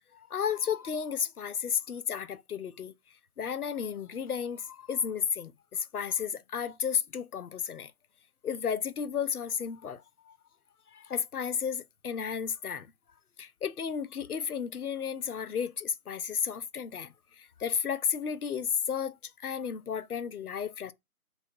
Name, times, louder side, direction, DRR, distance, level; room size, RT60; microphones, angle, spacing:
voice 1, 0.1-2.9 3.4-7.9 8.4-10.4 10.9-12.9 13.4-19.2 19.4-20.9, left 7 dB, 75° left, 0.5 m, -33 dB
3.0 x 2.8 x 2.7 m
figure-of-eight pair, 170°, 45 cm